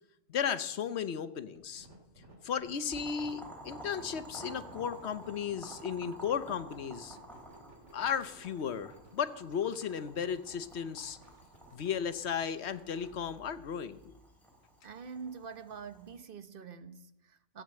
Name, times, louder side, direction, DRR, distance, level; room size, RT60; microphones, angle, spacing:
voice 1, 0.3-1.9 2.4-7.2 7.9-11.2 11.7-14.1, left 7 dB, 60° left, 1.0 m, -35 dB
sound 1, 1.5-13.2, right 2 dB, 65° right, 3.1 m, -58 dB
Boiling, 2.9-16.1, right 1 dB, ahead, 3.9 m, -51 dB
voice 2, 14.8-17.6, right 5 dB, 50° right, 1.0 m, -45 dB
15.0 x 8.9 x 7.6 m
omnidirectional pair, 1.3 m